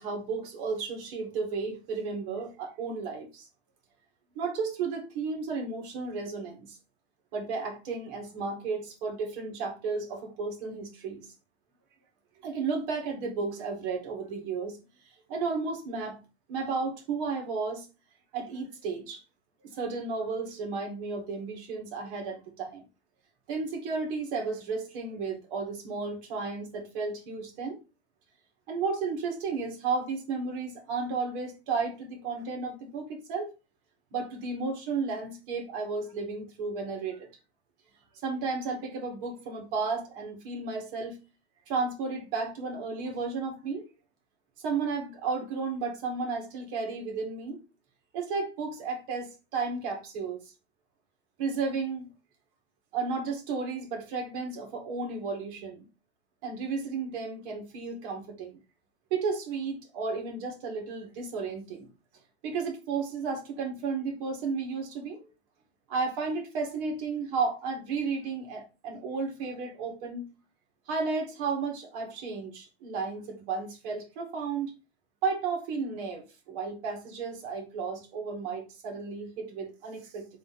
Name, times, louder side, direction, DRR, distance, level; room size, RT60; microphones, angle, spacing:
voice 1, 0.0-3.5 4.4-6.8 7.3-11.3 12.4-14.8 15.3-16.2 16.5-17.9 18.3-19.2 19.7-22.8 23.5-27.8 28.7-33.5 34.1-37.3 38.2-41.2 41.7-43.8 44.6-47.6 48.1-50.5 51.4-52.1 52.9-55.9 56.4-58.6 59.1-61.9 62.4-65.3 65.9-70.2 70.9-74.7 75.2-80.3, right 4 dB, 55° right, 2.0 m, -33 dB
3.8 x 3.0 x 4.0 m
hypercardioid pair, 110°, 33 cm